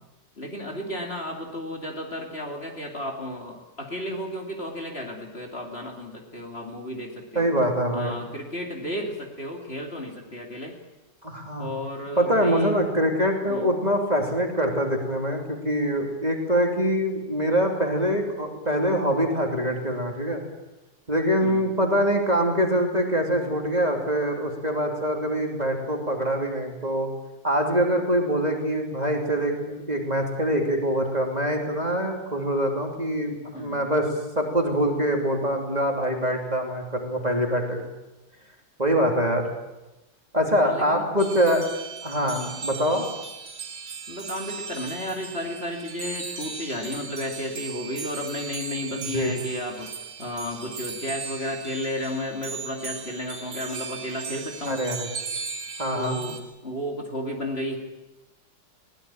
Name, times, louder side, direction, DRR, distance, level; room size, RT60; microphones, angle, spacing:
voice 1, 0.4-7.5 7.9-10.8 11.6-12.8 13.5-13.7 21.4-21.6 33.5-33.9 40.6-41.0 42.3-42.6 44.1-49.9 50.2-54.8 55.9-57.8, left 1 dB, 35° left, 1 dB, 2.9 m, -33 dB
voice 2, 7.3-8.1 11.2-11.7 12.2-20.4 21.1-27.1 27.4-34.1 34.3-37.8 38.8-39.5 40.3-41.6 42.0-43.0 48.9-49.3 54.7-55.1 55.8-56.2, equal, 20° right, 1 dB, 3.0 m, -24 dB
sound 1, 41.2-56.4, right 5 dB, 80° right, 2.9 m, -37 dB
22.0 x 17.5 x 8.8 m, 1.0 s
omnidirectional pair, 2.0 m